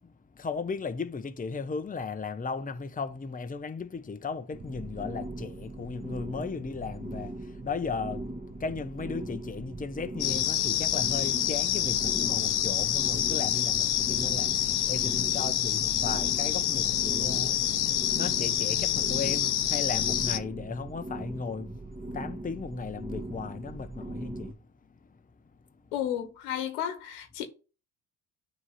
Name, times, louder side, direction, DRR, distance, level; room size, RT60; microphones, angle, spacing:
voice 1, 0.0-25.2, left 5 dB, 20° left, 0.8 m, -36 dB
sound 1, 4.5-24.5, right 2 dB, 20° right, 1.7 m, -40 dB
sound 2, 10.2-20.4, left 11 dB, 55° left, 1.0 m, -27 dB
voice 2, 25.9-27.5, left 10 dB, 90° left, 1.4 m, -32 dB
9.6 x 3.2 x 5.6 m
hypercardioid pair, 60°, 46 cm